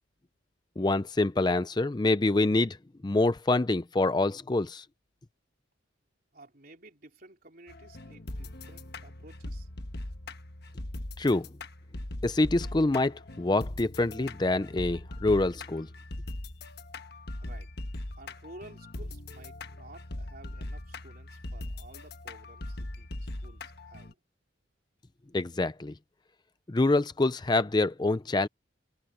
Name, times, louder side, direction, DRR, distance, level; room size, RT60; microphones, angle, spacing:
voice 1, 0.8-2.8 3.0-4.8 11.2-11.5 12.2-15.9 25.3-25.9 26.7-28.5, left 2 dB, 20° left, 0.4 m, -26 dB
voice 2, 6.3-9.7 17.4-17.7 18.2-24.2, right 2 dB, 45° right, 3.8 m, -53 dB
sound 1, 7.7-24.1, left 1 dB, 55° left, 1.3 m, -40 dB
head